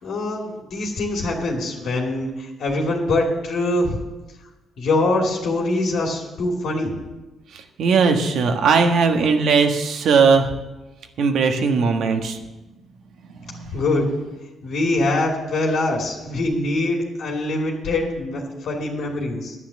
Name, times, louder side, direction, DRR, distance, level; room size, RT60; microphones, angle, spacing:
voice 1, 0.0-4.0 4.8-6.9 13.7-14.1 14.6-19.6, left 2 dB, 70° left, -1 dB, 2.7 m, -23 dB
voice 2, 7.5-10.5 11.2-12.4 13.4-13.8, right 5 dB, 70° right, 4 dB, 1.5 m, -19 dB
10.0 x 9.8 x 7.5 m, 1.1 s
cardioid pair, 90°, 0 cm